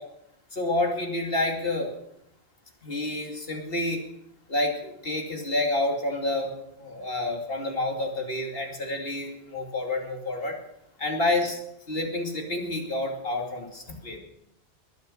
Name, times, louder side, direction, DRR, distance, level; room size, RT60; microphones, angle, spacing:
voice 1, 0.5-1.9 2.8-4.0 4.5-6.5 6.8-10.5 11.0-11.6 11.9-14.2, left 2 dB, 55° left, 1 dB, 2.9 m, -28 dB
21.5 x 7.3 x 6.4 m, 0.77 s
omnidirectional pair, 1.1 m